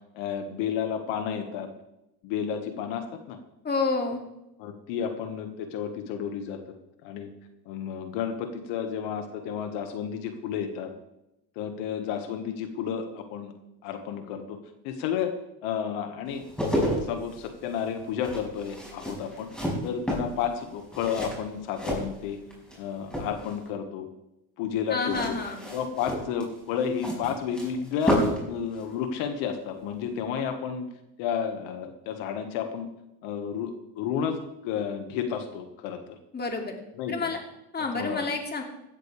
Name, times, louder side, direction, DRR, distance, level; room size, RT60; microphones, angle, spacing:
voice 1, 0.1-1.7 2.2-3.4 4.6-6.6 7.0-7.3 7.7-10.9 11.6-13.5 13.8-14.6 14.8-15.3 15.6-16.5 17.0-19.5 19.8-22.4 22.8-24.1 24.6-25.4 25.7-28.2 28.5-30.9 31.2-32.9 33.2-36.2 37.0-37.3 37.9-38.3, left 8 dB, 75° left, 6 dB, 1.8 m, -31 dB
voice 2, 3.6-4.2 24.9-25.6 36.3-36.7 37.1-37.4 37.7-38.6, left 3 dB, 20° left, 2 dB, 2.6 m, -29 dB
sound 1, 16.3-22.8 23.0-23.7 25.0-28.5 28.8-28.9, equal, ahead, 5.4 m, -31 dB
16.5 x 13.5 x 3.5 m, 0.88 s
cardioid pair, 125°, 45 cm